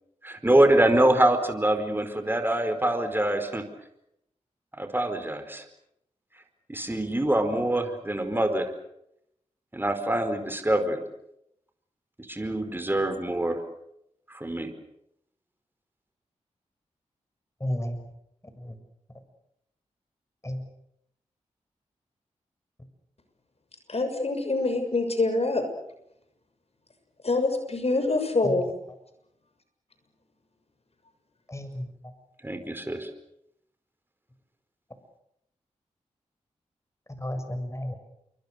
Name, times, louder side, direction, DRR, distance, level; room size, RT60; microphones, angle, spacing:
voice 1, 0.2-3.6 4.8-5.6 6.7-8.7 9.7-11.0 12.3-13.6 14.3-14.7 32.4-33.1, right 1 dB, 15° right, 8 dB, 4.7 m, -24 dB
voice 2, 17.6-18.0 18.6-18.7 20.4-20.6 28.4-28.6 31.5-31.9 37.2-38.0, left 1 dB, 20° left, 8 dB, 7.4 m, -32 dB
voice 3, 23.9-25.6 27.2-28.7, left 2 dB, 50° left, 7 dB, 6.8 m, -25 dB
28.5 x 24.0 x 6.8 m, 0.79 s
cardioid pair, 40°, 13 cm